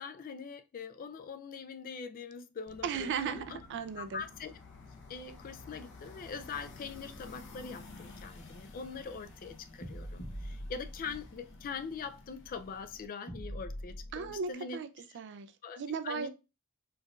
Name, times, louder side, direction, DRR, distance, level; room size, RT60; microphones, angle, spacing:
voice 1, 0.0-3.6 4.0-4.6 5.1-14.8 15.6-16.3, left 5 dB, 40° left, 0.3 m, -43 dB
sound 1, 2.7-13.1, left 3 dB, 55° left, 0.7 m, -52 dB
voice 2, 2.8-4.2 14.1-14.9 15.1-16.3, right 6 dB, 55° right, 0.4 m, -36 dB
sound 2, 8.1-8.9 9.8-11.5 11.8-11.9 13.3-14.4, equal, 70° left, 1.3 m, -44 dB
4.5 x 2.5 x 2.3 m
head